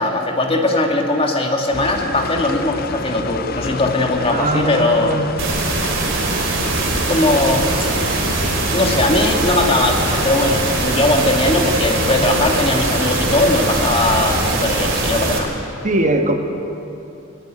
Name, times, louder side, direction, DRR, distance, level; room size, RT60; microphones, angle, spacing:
voice 1, 0.0-5.2 7.1-7.6 8.7-15.5, left 2 dB, 30° left, 3 dB, 2.2 m, -19 dB
sound 1, 1.7-14.5, left 4 dB, 45° left, 0.7 m, -29 dB
voice 2, 4.3-5.3 15.8-16.4, right 2 dB, 35° right, 5 dB, 1.4 m, -20 dB
sound 2, 5.4-15.4, right 3 dB, 70° right, 4.0 m, -21 dB
20.5 x 20.5 x 9.1 m, 2.7 s
head